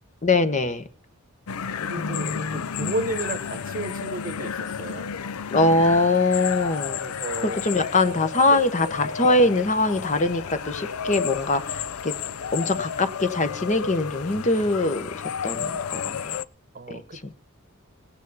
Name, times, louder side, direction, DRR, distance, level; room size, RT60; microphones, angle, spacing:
voice 1, 0.2-0.8 1.9-2.6 5.5-7.0 7.4-12.1 12.5-15.1 15.4-16.4 16.9-17.3, left 2 dB, 35° left, 11 dB, 1.1 m, -23 dB
sound 1, 1.5-16.4, left 7 dB, 90° left, 0.5 m, -32 dB
voice 2, 1.8-5.1 6.9-7.6 8.5-8.6 16.7-17.3, right 2 dB, 40° right, 13 dB, 1.0 m, -33 dB
17.5 x 9.2 x 4.1 m, 0.42 s
head